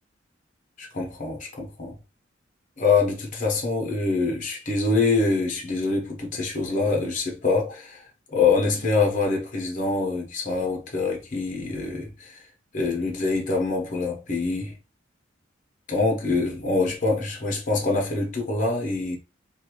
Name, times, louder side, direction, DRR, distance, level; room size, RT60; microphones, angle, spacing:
voice 1, 0.8-2.0 2.8-8.0 8.3-12.4 12.7-14.7 15.9-19.2, left 3 dB, 40° left, 0.8 m, -25 dB
2.6 x 2.2 x 3.0 m
head